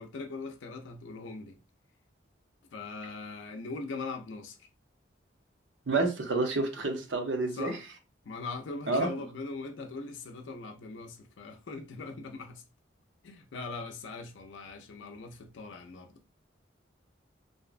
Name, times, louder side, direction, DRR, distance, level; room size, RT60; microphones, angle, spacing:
voice 1, 0.0-1.6 2.7-4.6 7.5-7.8 8.3-12.6 13.2-16.1, left 3 dB, 85° left, 0.4 m, -40 dB
voice 2, 5.9-7.8 8.9-9.1, right 3 dB, 85° right, 0.7 m, -29 dB
2.6 x 2.1 x 2.4 m
head